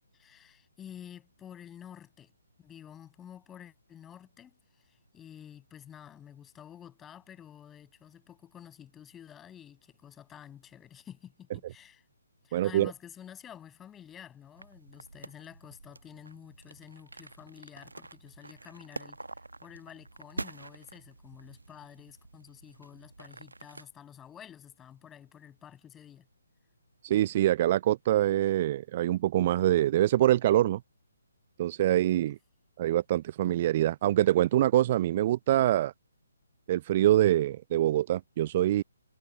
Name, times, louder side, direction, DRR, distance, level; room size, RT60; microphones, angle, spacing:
voice 1, 0.1-2.3 2.6-4.5 4.8-12.0 12.4-19.2 19.6-26.3, left 9 dB, 10° left, 6.6 m, -50 dB
voice 2, 12.5-12.9 27.0-30.8 31.6-32.4 32.8-35.9 36.7-38.8, right 13 dB, 35° right, 0.4 m, -25 dB
sound 1, 14.6-23.9, right 2 dB, 75° right, 1.0 m, -46 dB
figure-of-eight pair, 135°, 0 cm